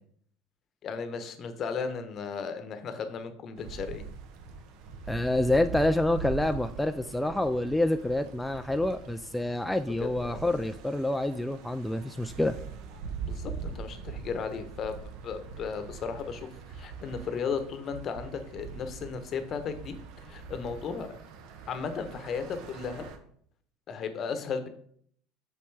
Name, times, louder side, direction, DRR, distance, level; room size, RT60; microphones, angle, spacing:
voice 1, 0.8-4.0 10.0-10.4 13.2-15.0 15.2-20.0 20.2-21.1 21.7-23.1 23.9-24.7, left 5 dB, 45° left, 8 dB, 0.9 m, -35 dB
sound 1, 3.6-23.2, right 5 dB, 65° right, 0.9 m, -42 dB
voice 2, 5.1-12.6, left 1 dB, 5° left, 8 dB, 0.3 m, -27 dB
6.5 x 5.4 x 3.4 m, 0.63 s
hypercardioid pair, 90°, 0 cm